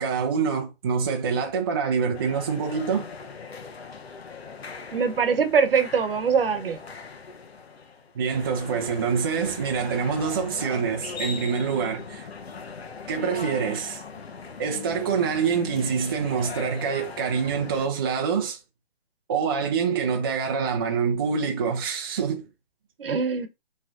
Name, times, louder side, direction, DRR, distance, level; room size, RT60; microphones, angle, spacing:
voice 1, 0.0-3.1 8.1-12.3 13.1-14.0 14.6-18.6 19.3-22.4, right 6 dB, 25° right, 0.5 m, -26 dB
sound 1, 2.1-17.9, left 5 dB, 85° left, 0.9 m, -39 dB
voice 2, 4.9-6.8 23.0-23.5, right 6 dB, 65° right, 1.0 m, -22 dB
5.8 x 3.2 x 2.6 m
hypercardioid pair, 155°, 31 cm